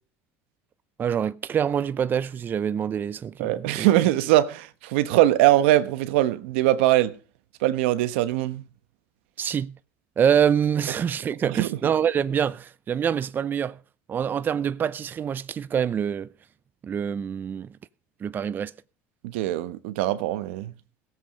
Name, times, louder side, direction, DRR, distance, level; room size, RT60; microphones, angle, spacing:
voice 1, 1.0-3.9 9.4-9.7 10.2-13.8 14.1-16.3 16.8-17.7 18.2-18.7, right 8 dB, 30° right, 0.5 m, -25 dB
voice 2, 3.4-7.1 7.6-8.6 11.4-11.7 19.2-20.7, right 15 dB, 85° right, 1.1 m, -22 dB
17.5 x 7.8 x 5.2 m
supercardioid pair, 115°, 6 cm